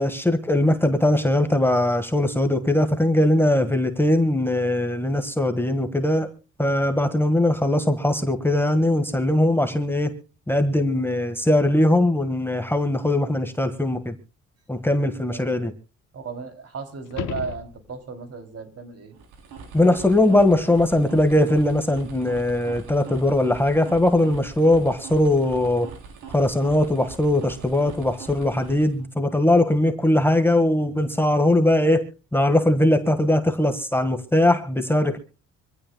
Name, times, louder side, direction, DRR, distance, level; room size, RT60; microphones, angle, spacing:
voice 1, 0.0-6.3 6.6-10.1 10.5-14.1 14.7-15.7 19.7-25.9 26.3-35.2, left 1 dB, 5° left, 7 dB, 1.5 m, -20 dB
voice 2, 15.3-15.7 16.1-19.1, right 5 dB, 50° right, 6 dB, 3.0 m, -35 dB
sound 1, 17.0-18.3 23.2-23.3, left 11 dB, 80° left, 1.1 m, -34 dB
sound 2, 19.1-29.1, right 5 dB, 85° right, 3.3 m, -42 dB
25.0 x 15.5 x 2.2 m, 0.32 s
cardioid pair, 90°, 30 cm